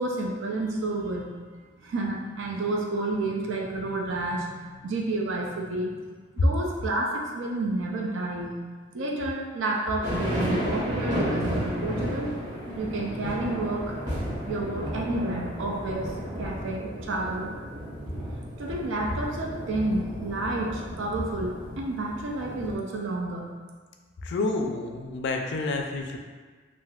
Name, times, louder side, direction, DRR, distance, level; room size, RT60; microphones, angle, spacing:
voice 1, 0.0-1.4 1.8-6.0 6.4-8.6 8.9-14.0 14.5-17.5 18.6-23.5, right 2 dB, 65° right, -1 dB, 0.4 m, -30 dB
sound 1, 10.0-22.8, equal, 25° right, 1.0 m, -33 dB
voice 2, 24.2-26.2, left 2 dB, 60° left, 3 dB, 0.3 m, -28 dB
3.4 x 2.5 x 2.3 m, 1.4 s
head